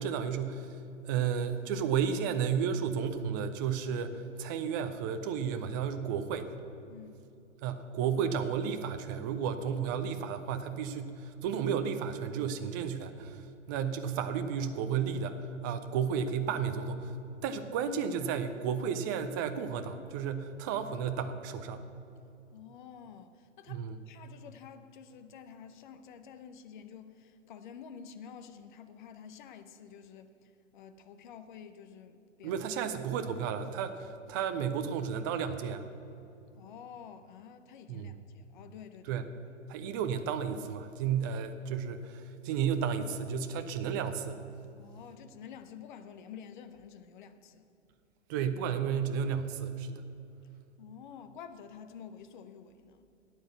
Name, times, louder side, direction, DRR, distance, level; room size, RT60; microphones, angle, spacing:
voice 1, 0.0-6.5 7.6-17.1 17.4-21.8 23.7-24.0 32.4-35.8 37.9-38.1 39.1-39.2 39.7-44.4 48.3-50.1, right 7 dB, 20° right, 8 dB, 0.4 m, -33 dB
voice 2, 6.9-7.2 22.5-32.6 36.6-39.2 44.8-47.7 50.8-53.0, left 7 dB, 40° left, 10 dB, 0.8 m, -49 dB
12.5 x 9.2 x 6.8 m, 2.7 s
figure-of-eight pair, 110°, 37 cm